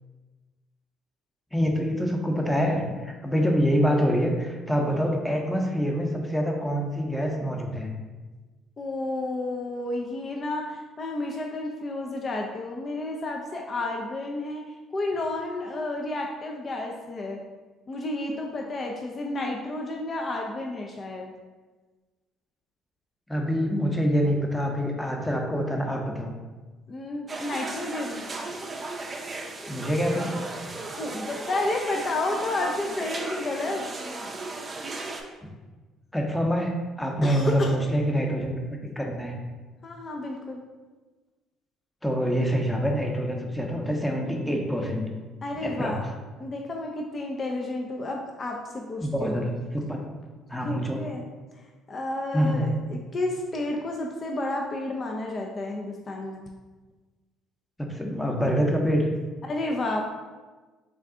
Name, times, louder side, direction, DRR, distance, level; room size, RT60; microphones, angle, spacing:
voice 1, 1.5-7.9 23.3-26.3 29.7-30.4 36.1-39.4 42.0-45.0 45.5-46.0 49.0-50.0 50.5-51.1 52.3-52.8 57.8-59.1, equal, 5° left, 1 dB, 0.7 m, -26 dB
voice 2, 8.8-14.6 14.9-17.4 17.9-21.3 26.9-28.3 31.0-33.9 37.2-37.7 39.8-40.6 45.4-46.0 46.4-49.5 50.6-51.3 51.9-56.5 59.4-60.0, left 2 dB, 40° left, 1 dB, 0.4 m, -31 dB
sound 1, 27.3-35.2, right 2 dB, 35° right, 0.5 m, -36 dB
3.6 x 2.3 x 3.5 m, 1.3 s
hypercardioid pair, 65°, 0 cm